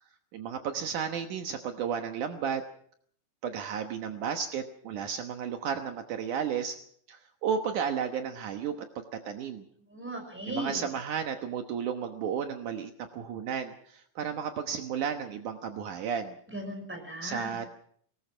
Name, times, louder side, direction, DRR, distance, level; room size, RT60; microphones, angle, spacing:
voice 1, 0.3-2.6 3.4-6.8 7.1-9.7 10.5-16.4 17.2-17.7, right 7 dB, 70° right, 5 dB, 2.6 m, -33 dB
voice 2, 9.9-10.8 16.5-17.6, right 1 dB, 5° right, 3 dB, 5.5 m, -37 dB
23.5 x 19.0 x 6.1 m, 0.63 s
omnidirectional pair, 3.8 m